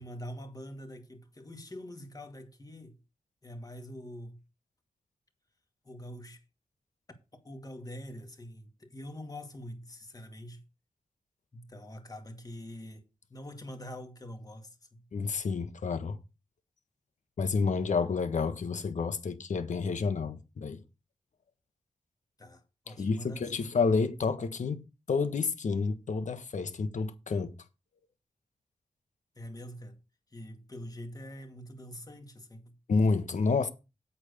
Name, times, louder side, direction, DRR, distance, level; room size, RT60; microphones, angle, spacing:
voice 1, 0.0-3.0 3.4-4.4 5.8-6.4 7.3-10.6 11.5-15.1 22.4-23.7 29.4-30.0 30.3-32.8, equal, 30° left, 2.3 m, -45 dB
voice 2, 15.1-16.2 17.4-20.8 23.0-27.5 32.9-33.7, left 4 dB, 75° left, 1.5 m, -29 dB
8.3 x 6.6 x 6.8 m
wide cardioid pair, 105°, 13 cm